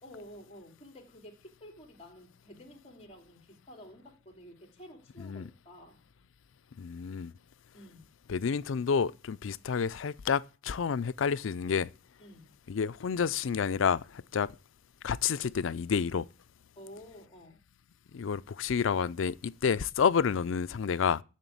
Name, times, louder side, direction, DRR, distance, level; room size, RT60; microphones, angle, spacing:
voice 1, 0.0-6.1 7.7-8.1 12.2-12.5 16.8-17.6, equal, 35° left, 2.6 m, -51 dB
voice 2, 5.2-5.5 6.8-7.3 8.3-11.9 12.7-14.5 15.0-16.3 18.1-21.2, left 6 dB, 80° left, 0.4 m, -29 dB
7.4 x 7.1 x 8.3 m
head